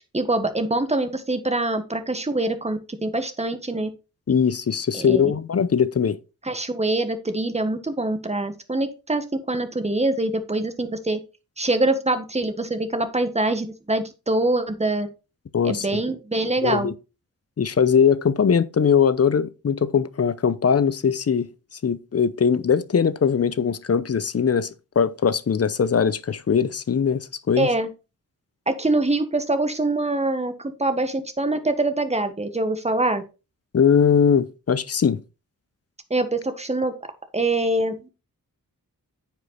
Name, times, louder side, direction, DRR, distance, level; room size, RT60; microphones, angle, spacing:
voice 1, 0.1-3.9 4.9-5.2 6.4-11.2 11.6-15.1 15.6-16.9 27.6-27.9 28.7-30.5 30.8-33.2 36.1-36.9 37.3-38.1, right 2 dB, 20° right, 1.5 m, -24 dB
voice 2, 4.3-6.2 15.5-16.0 16.6-16.9 17.6-21.5 21.8-24.7 25.0-27.7 33.7-35.2, left 7 dB, 45° left, 0.7 m, -20 dB
9.1 x 5.3 x 4.3 m
cardioid pair, 80°, 35 cm